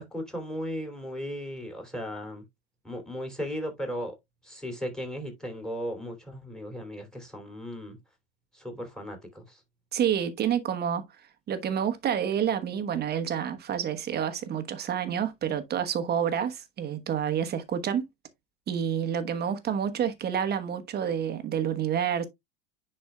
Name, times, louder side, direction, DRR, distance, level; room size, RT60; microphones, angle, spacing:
voice 1, 0.0-2.4 2.8-4.1 4.4-8.0 8.5-9.6, equal, ahead, 2.8 m, -36 dB
voice 2, 9.9-11.0 11.5-18.0 18.7-22.3, right 8 dB, 30° right, 1.1 m, -28 dB
10.0 x 4.4 x 2.3 m
supercardioid pair, 120°, 33 cm